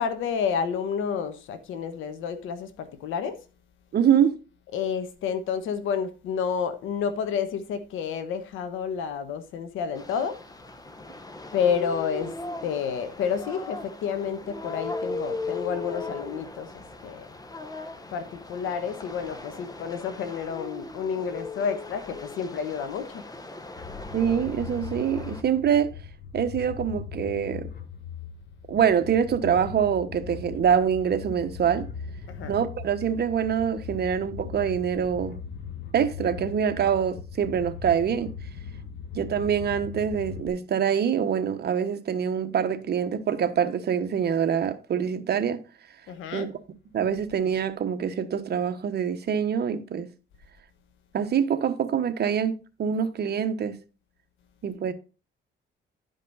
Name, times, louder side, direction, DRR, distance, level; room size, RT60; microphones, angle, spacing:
voice 1, 0.0-3.4 4.7-10.4 11.5-12.3 12.6-17.3 18.1-23.2 32.3-32.6 46.1-46.5, left 7 dB, 90° left, 1.2 m, -30 dB
voice 2, 3.9-4.4 24.1-25.9 26.3-27.7 28.7-31.8 32.4-35.4 35.9-38.3 39.1-45.6 46.3-46.5 46.9-50.1 51.1-53.8 54.6-54.9, right 8 dB, 55° right, 1.1 m, -25 dB
sound 1, 10.0-25.4, left 3 dB, 20° left, 1.1 m, -38 dB
sound 2, 23.8-40.5, left 6 dB, 55° left, 1.2 m, -39 dB
11.0 x 5.3 x 4.0 m
cardioid pair, 90°, 20 cm